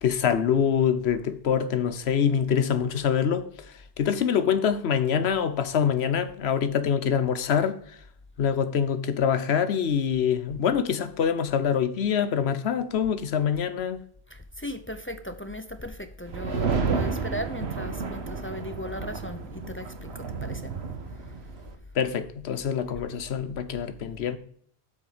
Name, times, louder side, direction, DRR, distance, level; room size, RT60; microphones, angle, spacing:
voice 1, 0.0-3.5 4.0-7.8 8.4-14.0 21.9-24.4, left 7 dB, 80° left, 1.0 m, -25 dB
voice 2, 14.3-20.1 20.4-20.7, equal, 15° left, 0.4 m, -37 dB
sound 1, 16.3-21.7, right 5 dB, 85° right, 1.3 m, -31 dB
7.8 x 6.6 x 5.0 m
omnidirectional pair, 1.1 m